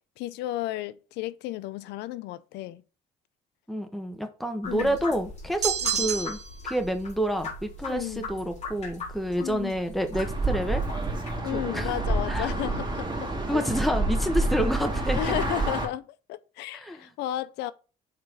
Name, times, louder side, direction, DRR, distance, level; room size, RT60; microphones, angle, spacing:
voice 1, 0.2-2.8 4.7-5.0 5.8-6.0 7.8-8.3 9.4-9.8 11.4-13.6 15.2-17.7, left 15 dB, 90° left, 0.6 m, -33 dB
voice 2, 3.7-6.4 6.6-10.8 11.7-11.9 12.3-12.5 13.5-15.2 16.7-17.0, equal, ahead, 1.1 m, -28 dB
sound 1, 4.6-11.4, left 3 dB, 40° left, 3.9 m, -40 dB
sound 2, 5.6-6.6, right 8 dB, 40° right, 1.1 m, -28 dB
sound 3, 10.1-15.9, right 2 dB, 25° right, 2.6 m, -28 dB
6.8 x 4.3 x 5.0 m
cardioid pair, 110°, 17 cm